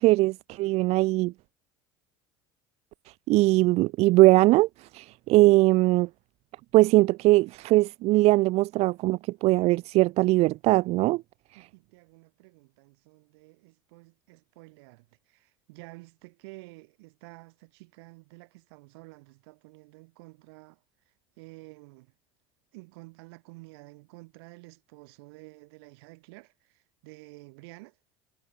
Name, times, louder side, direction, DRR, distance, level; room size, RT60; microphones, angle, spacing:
voice 1, 0.0-1.3 3.3-6.1 6.7-11.2, right 19 dB, 55° right, 0.4 m, -21 dB
voice 2, 11.5-20.8 21.4-22.1 22.7-28.0, right 26 dB, 75° right, 5.4 m, -50 dB
hypercardioid pair, 85°, 13 cm